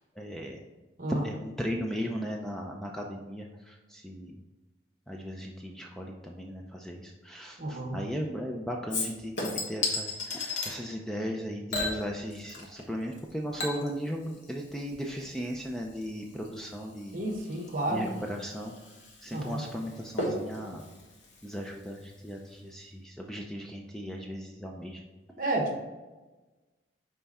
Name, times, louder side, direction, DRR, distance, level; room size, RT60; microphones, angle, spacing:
voice 1, 0.2-0.6 1.1-4.4 5.1-17.2 17.9-18.7 19.2-20.9 21.4-25.0, equal, 5° left, 0 dB, 0.4 m, -37 dB
voice 2, 7.6-8.0 17.1-18.2 19.3-19.6 25.4-25.8, right 2 dB, 50° right, 1 dB, 1.2 m, -31 dB
Chink clink / Liquid, 8.9-10.8 11.7-12.9 13.1-22.2 22.5-22.6, left 2 dB, 85° left, 1.5 m, -37 dB
5.7 x 4.3 x 4.2 m, 1.2 s
head